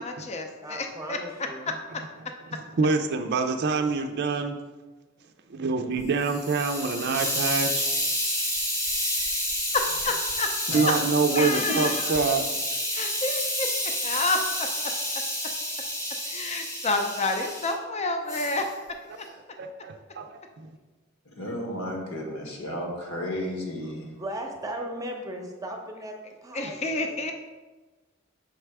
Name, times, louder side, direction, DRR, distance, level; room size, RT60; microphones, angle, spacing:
voice 1, 0.0-1.2 10.0-10.5 10.7-10.9 11.3-12.0 12.9-13.7 14.0-14.4 16.3-18.6 26.5-27.3, left 3 dB, 30° left, 4 dB, 0.5 m, -29 dB
voice 2, 0.6-1.7 24.2-26.2 26.4-27.3, right 1 dB, 15° right, 2 dB, 0.8 m, -37 dB
voice 3, 2.5-4.6 5.5-7.8 10.7-12.4 19.6-20.7, right 4 dB, 55° right, 6 dB, 0.4 m, -26 dB
Hiss, 6.0-17.7 18.3-18.7, equal, 15° left, 0.9 m, -29 dB
voice 4, 21.4-24.1, left 1 dB, 85° left, 0 dB, 1.4 m, -33 dB
6.5 x 3.3 x 4.7 m, 1.3 s
head